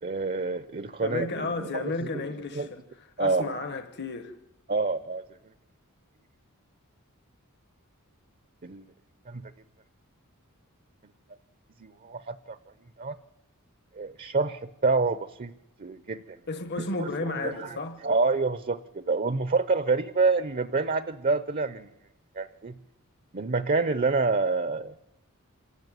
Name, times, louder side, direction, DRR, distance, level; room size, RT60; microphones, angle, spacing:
voice 1, 0.0-2.2 2.5-2.7 3.2-3.6 4.7-5.2 8.6-8.8 9.3-9.5 11.8-12.6 13.0-13.2 13.9-15.5 15.8-16.4 16.8-21.9 22.4-22.8 23.3-25.0, right 3 dB, 40° right, 0.7 m, -28 dB
voice 2, 1.0-4.3 16.5-18.0, left 3 dB, 50° left, 1.2 m, -33 dB
26.5 x 13.5 x 9.3 m
head